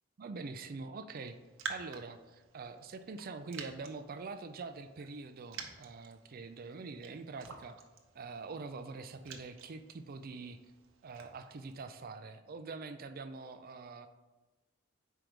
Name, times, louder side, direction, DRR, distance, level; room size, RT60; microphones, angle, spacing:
voice 1, 0.2-1.4 1.7-7.8 8.1-10.6 11.0-14.1, right 4 dB, 45° right, 9 dB, 0.4 m, -44 dB
Raindrop, 1.2-11.8, right 5 dB, 70° right, 0.8 m, -50 dB
5.1 x 4.6 x 6.1 m, 1.1 s
head